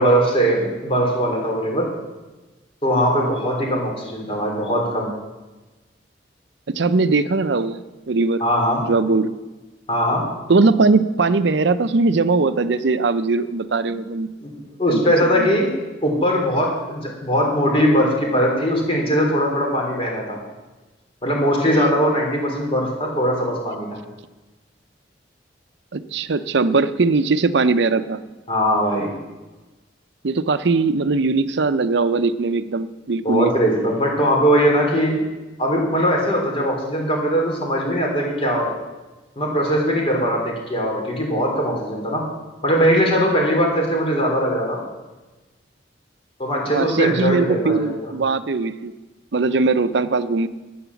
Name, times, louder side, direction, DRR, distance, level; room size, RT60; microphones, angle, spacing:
voice 1, 0.0-1.9 2.8-5.1 8.4-8.8 9.9-10.2 14.4-15.7 16.0-20.4 21.2-24.0 28.5-29.1 33.2-35.2 35.6-38.7 39.3-42.2 42.6-44.8 46.4-48.1, equal, 30° left, 0 dB, 3.5 m, -20 dB
voice 2, 6.7-7.8 8.1-8.4 8.9-9.4 10.5-14.3 14.9-15.5 25.9-28.2 30.2-33.5 46.7-48.9 49.3-50.5, right 3 dB, 70° right, 13 dB, 0.6 m, -20 dB
11.0 x 8.7 x 7.0 m, 1.2 s
head